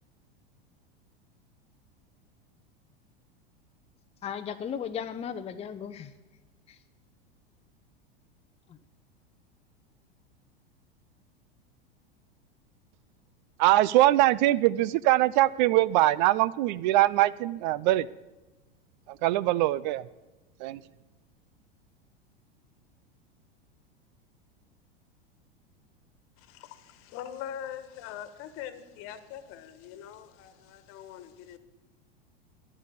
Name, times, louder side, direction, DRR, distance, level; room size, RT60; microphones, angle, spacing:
voice 1, 4.2-6.1 6.7-6.8 8.7-8.8, left 8 dB, 20° left, 0.7 m, -36 dB
voice 2, 13.6-18.1 19.2-20.0 20.6-20.8, right 16 dB, 50° right, 0.4 m, -22 dB
voice 3, 26.4-31.6, left 10 dB, 50° left, 1.5 m, -42 dB
11.0 x 11.0 x 8.4 m
hypercardioid pair, 90°, 29 cm